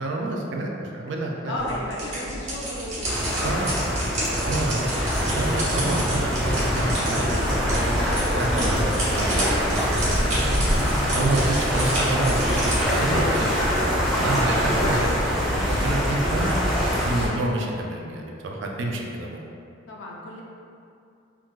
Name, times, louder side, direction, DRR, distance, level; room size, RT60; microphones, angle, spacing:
voice 1, 0.0-1.8 3.4-3.7 4.4-4.9 5.2-7.8 8.3-10.7 11.1-16.5 17.0-19.4, right 2 dB, 65° right, 0 dB, 0.3 m, -29 dB
voice 2, 1.5-3.9 4.2-4.7 19.9-20.4, left 1 dB, 70° left, -2 dB, 0.5 m, -35 dB
sound 1, 1.6-12.9, right 1 dB, 35° right, 0.7 m, -31 dB
sound 2, 3.0-17.3, equal, ahead, 0.4 m, -24 dB
sound 3, 4.2-6.1 6.4-7.5 8.2-8.3 8.7-9.2 10.3-10.9 11.2-11.9 12.2-12.3 12.6-13.9 14.4-15.0, right 1 dB, 85° right, 1.0 m, -43 dB
3.5 x 2.2 x 2.3 m, 2.5 s
head